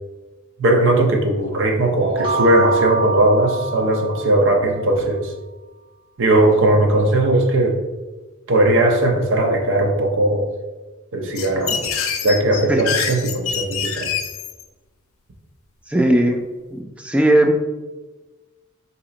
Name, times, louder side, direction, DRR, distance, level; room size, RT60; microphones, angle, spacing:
voice 1, 0.6-5.3 6.2-7.8 8.5-10.5 11.1-11.9 12.2-14.1, right 1 dB, 60° right, 2 dB, 0.7 m, -18 dB
sound 1, 2.0-4.8, right 3 dB, 25° right, 1.1 m, -25 dB
sound 2, 11.3-14.6, left 7 dB, 70° left, 0.5 m, -25 dB
voice 2, 15.9-16.4 16.7-17.6, right 1 dB, 5° right, 3 dB, 0.3 m, -17 dB
4.1 x 2.9 x 3.8 m, 1.2 s
head